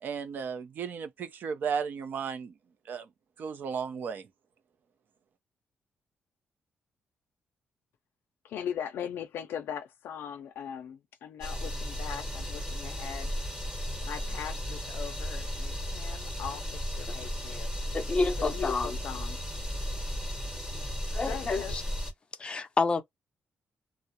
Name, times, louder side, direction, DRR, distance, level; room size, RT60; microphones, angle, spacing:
voice 1, 0.0-2.5 2.9-3.1 3.4-4.3, right 6 dB, 55° right, 0.5 m, -34 dB
voice 2, 8.4-13.3 14.0-18.0 18.4-19.4 21.2-21.9, left 8 dB, 80° left, 0.4 m, -40 dB
sound 1, 11.4-22.1, equal, 20° right, 1.0 m, -35 dB
voice 3, 17.9-19.0 21.1-21.8 22.4-23.0, left 3 dB, 30° left, 0.5 m, -29 dB
2.4 x 2.0 x 2.7 m
cardioid pair, 140°, 4 cm